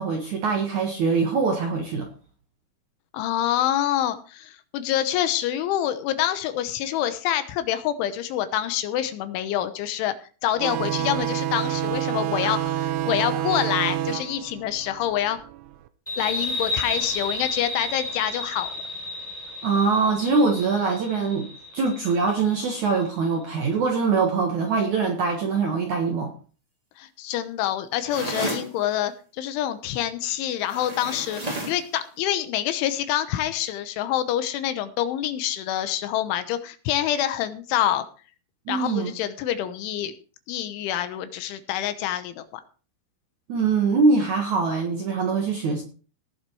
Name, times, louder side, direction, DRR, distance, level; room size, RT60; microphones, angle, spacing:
voice 1, 0.0-2.1 12.4-12.5 19.6-21.5 21.7-26.3 38.7-39.1 43.5-45.8, right 4 dB, 60° right, 3 dB, 2.0 m, -23 dB
voice 2, 3.1-10.2 10.4-15.4 16.2-18.7 27.0-38.0 38.7-40.1 40.5-42.6, left 11 dB, 80° left, 11 dB, 3.4 m, -26 dB
sound 1, 10.6-15.8, right 12 dB, 80° right, 3.2 m, -28 dB
sound 2, 16.1-23.3, left 2 dB, 10° left, 3.1 m, -32 dB
sound 3, 28.1-28.7 30.7-31.9, right 1 dB, 10° right, 1.8 m, -31 dB
18.0 x 7.3 x 4.7 m, 0.37 s
omnidirectional pair, 5.6 m